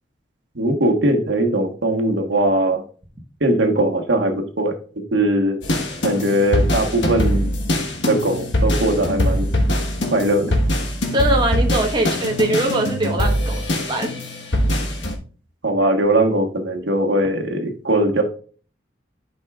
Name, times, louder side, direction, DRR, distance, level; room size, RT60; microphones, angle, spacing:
voice 1, 0.5-2.8 3.4-4.7 5.1-5.6 6.0-7.5 8.1-9.5 10.1-10.5 15.6-18.2, right 1 dB, 75° right, 3 dB, 1.3 m, -20 dB
sound 1, 5.6-15.1, left 1 dB, 75° left, 1.3 m, -22 dB
voice 2, 11.1-14.1, right 1 dB, 25° right, 1 dB, 1.1 m, -21 dB
10.5 x 5.5 x 2.4 m, 0.40 s
head